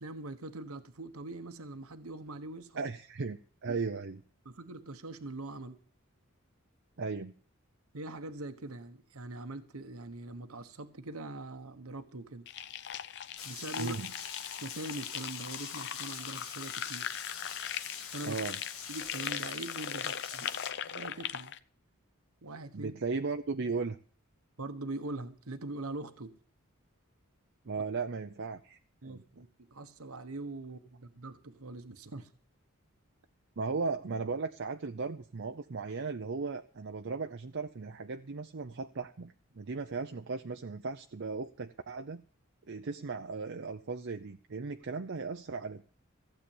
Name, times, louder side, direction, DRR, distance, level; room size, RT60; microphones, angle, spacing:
voice 1, 0.0-2.8 3.7-3.8 4.4-5.8 7.9-12.5 13.4-13.9 14.5-17.1 18.1-18.4 18.9-20.5 20.8-21.5 22.4-22.9 24.6-26.3 29.0-32.3, right 2 dB, 80° right, 9 dB, 1.2 m, -42 dB
voice 2, 2.8-4.2 7.0-7.3 13.8-14.1 18.2-18.6 22.7-24.0 27.7-28.8 29.0-29.2 33.6-42.2 42.7-45.9, right 4 dB, 60° right, 5 dB, 0.6 m, -36 dB
sound 1, 12.5-21.6, left 9 dB, 55° left, 0.6 m, -40 dB
Rain, 13.4-20.7, left 7 dB, 75° left, 1.7 m, -44 dB
15.5 x 8.2 x 7.2 m, 0.43 s
head